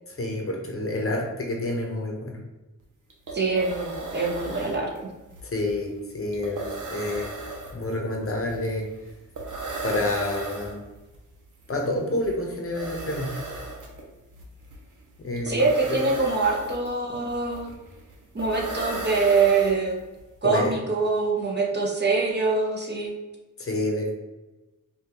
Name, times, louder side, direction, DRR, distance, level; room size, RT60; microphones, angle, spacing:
voice 1, 0.1-2.4 5.4-7.3 7.7-8.9 9.8-10.8 11.7-13.3 15.2-15.6 15.9-16.0 20.4-20.7 23.6-24.1, left 1 dB, 45° left, 0 dB, 0.9 m, -28 dB
sound 1, 2.8-2.9 3.1-20.2, right 2 dB, 70° right, 1.0 m, -37 dB
voice 2, 3.3-4.9 15.5-17.7 18.3-20.0 20.4-23.1, right 4 dB, 30° right, -1 dB, 0.9 m, -24 dB
5.2 x 2.5 x 2.9 m, 1.1 s
wide cardioid pair, 100°, 32 cm